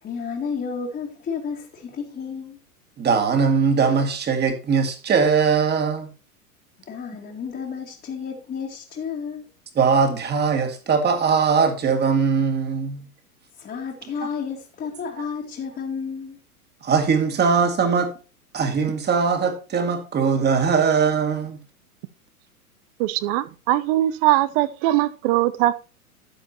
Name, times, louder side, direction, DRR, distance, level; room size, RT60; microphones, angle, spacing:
voice 1, 0.0-2.6 6.9-9.5 13.6-16.4, left 6 dB, 20° left, 2.1 m, -31 dB
voice 2, 3.0-6.1 9.8-13.0 16.8-18.1 18.5-21.6, right 5 dB, 20° right, 2.2 m, -20 dB
voice 3, 23.0-25.7, right 15 dB, 40° right, 0.7 m, -21 dB
12.5 x 8.0 x 2.9 m
hypercardioid pair, 105°, 44 cm